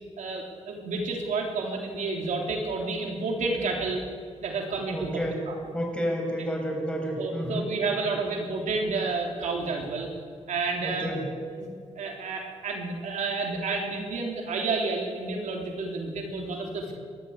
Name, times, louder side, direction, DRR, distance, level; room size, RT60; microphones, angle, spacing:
voice 1, 0.2-4.0 4.4-5.6 7.1-10.1 10.5-11.1 11.6-11.7 11.9-16.9, right 3 dB, 75° right, 1 dB, 3.6 m, -30 dB
voice 2, 4.9-5.4 5.7-7.7 7.9-8.1 10.8-11.2, equal, 10° left, 0 dB, 6.7 m, -30 dB
29.5 x 13.0 x 8.2 m, 2.2 s
cardioid pair, 105°, 12 cm